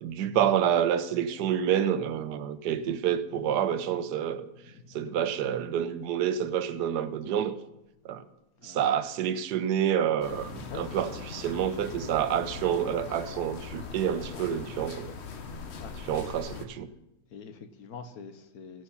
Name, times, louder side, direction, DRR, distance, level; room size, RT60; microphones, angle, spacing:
voice 1, 0.0-4.5 4.9-7.5 8.0-8.2 8.6-15.1 16.0-16.9, right 9 dB, 85° right, 1.3 m, -28 dB
voice 2, 4.6-5.0 8.6-8.8 10.7-11.3 15.8-15.9 16.2-16.3 17.3-18.8, left 5 dB, 70° left, 1.3 m, -45 dB
sound 1, 10.2-16.7, left 5 dB, 50° left, 1.0 m, -41 dB
16.5 x 6.3 x 5.6 m
omnidirectional pair, 1.7 m